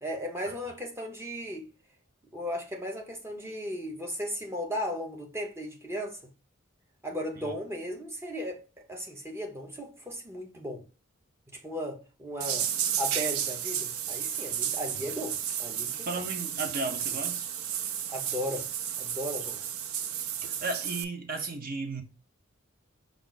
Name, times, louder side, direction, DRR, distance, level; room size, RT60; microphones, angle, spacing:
voice 1, 0.0-1.7 2.3-6.2 7.0-10.8 11.6-12.7 13.0-16.1 18.1-18.7 19.0-19.6, equal, 10° right, 0.8 m, -36 dB
sound 1, 12.4-21.0, right 9 dB, 90° right, 0.5 m, -32 dB
voice 2, 16.0-17.5 20.5-22.0, right 3 dB, 45° right, 0.8 m, -35 dB
5.0 x 2.4 x 3.9 m
head